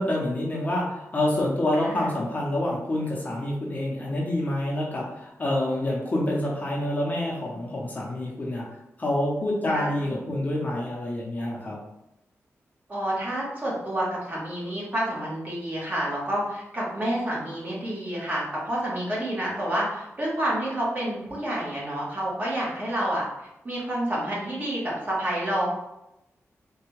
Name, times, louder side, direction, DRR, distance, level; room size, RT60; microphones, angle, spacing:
voice 1, 0.0-8.6 9.0-11.8, left 1 dB, 30° left, -3 dB, 0.6 m, -27 dB
voice 2, 1.7-2.1 9.7-10.1 12.9-23.2 23.6-25.7, right 1 dB, 35° right, -6 dB, 1.1 m, -29 dB
3.3 x 2.2 x 3.1 m, 0.88 s
wide cardioid pair, 140°, 5 cm